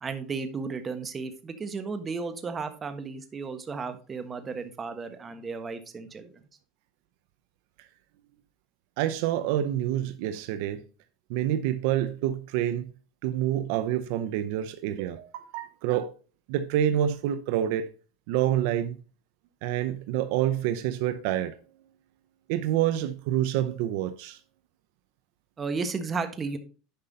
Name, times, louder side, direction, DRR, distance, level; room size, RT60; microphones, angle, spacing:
voice 1, 0.0-6.3 25.6-26.6, right 4 dB, 25° right, 1.3 m, -34 dB
voice 2, 9.0-10.8 11.3-12.9 13.2-16.1 16.5-17.9 18.3-19.0 19.6-21.5 22.5-24.4, right 11 dB, 70° right, 0.7 m, -27 dB
10.5 x 5.4 x 4.1 m
supercardioid pair, 130°, 0 cm